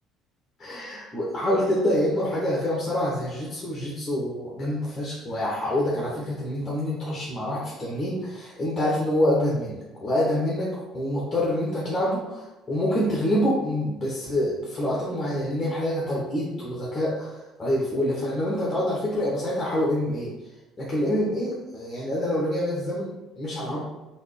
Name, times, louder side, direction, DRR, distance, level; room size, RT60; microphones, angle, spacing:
voice 1, 0.6-10.7 10.9-20.3 20.8-23.8, left 1 dB, 25° left, -5 dB, 1.2 m, -26 dB
4.0 x 3.0 x 3.3 m, 1.1 s
figure-of-eight pair, 55°, 0 cm